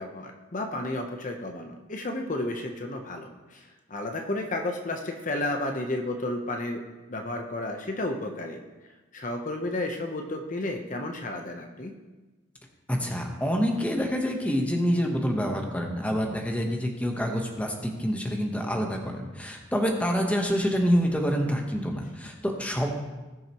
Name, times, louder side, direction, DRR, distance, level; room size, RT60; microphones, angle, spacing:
voice 1, 0.0-6.8 7.1-8.6 9.1-11.9, left 2 dB, 40° left, 4 dB, 0.8 m, -32 dB
voice 2, 12.9-22.9, equal, 5° left, 2 dB, 1.0 m, -27 dB
19.0 x 6.5 x 3.0 m, 1.2 s
head